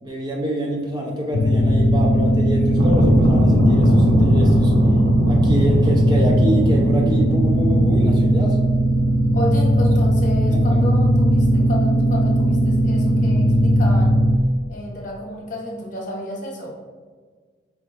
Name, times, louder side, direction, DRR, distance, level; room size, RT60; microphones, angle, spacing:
voice 1, 0.0-4.7 5.3-8.6 10.7-10.8, right 1 dB, 20° right, 0 dB, 0.5 m, -26 dB
sound 1, 1.3-14.4, equal, 85° left, 0.4 m, -17 dB
sound 2, 2.8-8.4, right 1 dB, 70° right, 0.8 m, -21 dB
voice 2, 9.3-14.1 14.7-16.7, equal, 40° left, -1 dB, 1.0 m, -31 dB
4.9 x 3.4 x 3.2 m, 1.5 s
head